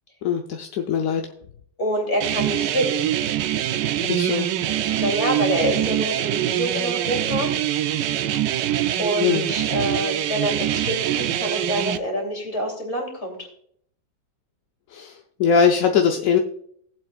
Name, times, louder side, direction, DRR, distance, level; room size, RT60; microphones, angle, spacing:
voice 1, 0.2-1.3 4.0-4.5 9.2-9.5 14.9-16.4, left 6 dB, 60° left, 3 dB, 1.0 m, -21 dB
voice 2, 1.8-3.0 4.7-7.5 9.0-13.4, equal, 40° left, 1 dB, 3.2 m, -26 dB
sound 1, 2.2-12.0, right 11 dB, 80° right, 1.3 m, -24 dB
18.5 x 7.8 x 2.4 m, 0.65 s
omnidirectional pair, 1.8 m